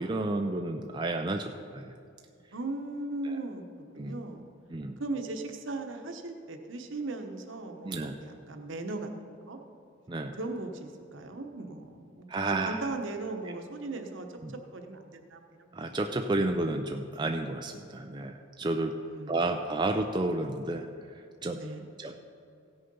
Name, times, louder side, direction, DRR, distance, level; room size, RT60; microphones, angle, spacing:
voice 1, 0.0-1.9 3.2-3.4 4.0-4.2 4.7-5.0 7.8-8.2 10.1-10.4 12.3-12.9 14.4-14.6 15.7-19.0 19.3-21.6 22.0-22.2, right 2 dB, 20° right, 4 dB, 0.4 m, -31 dB
voice 2, 2.5-4.5 5.0-9.6 10.4-15.7 16.3-16.4 19.0-19.4 21.5-21.9, right 2 dB, 65° right, 5 dB, 1.0 m, -38 dB
16.0 x 6.6 x 5.4 m, 2.4 s
head